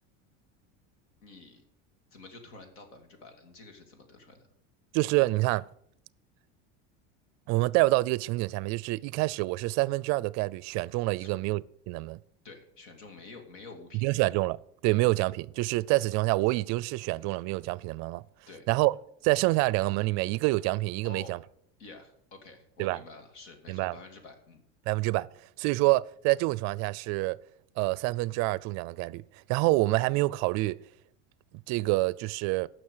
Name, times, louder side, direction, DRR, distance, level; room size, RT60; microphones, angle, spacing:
voice 1, 1.2-1.6 2.1-4.5 11.1-11.4 12.4-14.1 14.9-15.1 17.0-17.1 18.5-18.7 21.0-21.4 21.8-24.6, left 3 dB, 90° left, 2.7 m, -49 dB
voice 2, 4.9-5.6 7.5-12.2 14.0-18.2 18.7-18.9 19.2-21.4 22.8-23.0 23.7-24.0 24.9-25.3 25.6-27.4 27.8-29.2 29.5-30.8 31.7-32.7, right 21 dB, 50° right, 0.4 m, -27 dB
16.0 x 6.3 x 6.6 m
cardioid pair, 145°, 35 cm